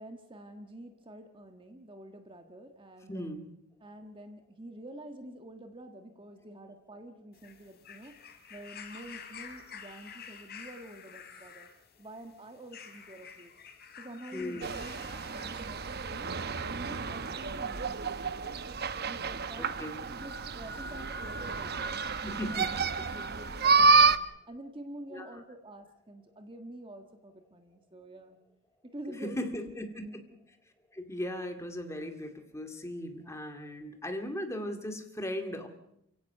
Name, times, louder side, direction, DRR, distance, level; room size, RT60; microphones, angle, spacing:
voice 1, 0.0-3.4 3.8-8.2 8.5-11.7 12.0-13.5 13.9-16.3 16.7-18.7 19.0-19.8 20.1-22.6 23.0-24.2 24.5-28.4 28.8-30.2, right 1 dB, 25° right, 6 dB, 1.5 m, -47 dB
voice 2, 3.1-3.5 14.3-14.7 19.6-20.0 22.2-22.7 23.0-23.1 25.1-25.4 29.1-30.2 30.9-35.7, equal, 15° left, 5 dB, 2.2 m, -38 dB
sound 1, 7.3-16.0 16.9-17.0, left 6 dB, 50° left, 3.5 m, -49 dB
sound 2, 14.6-24.2, right 4 dB, 50° right, 1.0 m, -29 dB
29.0 x 16.5 x 6.7 m, 0.77 s
head